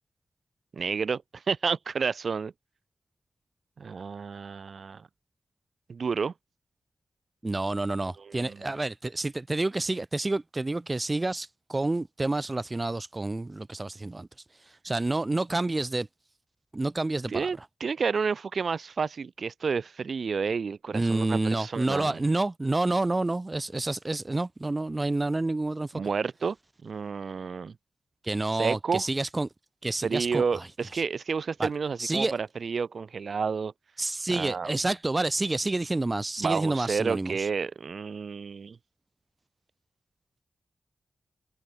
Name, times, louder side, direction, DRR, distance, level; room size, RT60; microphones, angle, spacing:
voice 1, 0.7-2.5 3.8-5.1 5.9-6.3 8.2-8.6 17.3-22.2 25.9-26.6 26.8-27.7 28.6-29.1 30.0-33.7 34.3-34.7 36.4-38.8, right 5 dB, 70° right, 3.3 m, -30 dB
voice 2, 7.4-14.3 14.8-16.1 16.7-17.5 20.9-25.9 28.2-29.5 29.8-30.6 30.9-31.0 31.6-31.7 32.0-32.3 34.0-37.4, right 2 dB, 30° right, 2.9 m, -28 dB
wide cardioid pair, 75°, 0 cm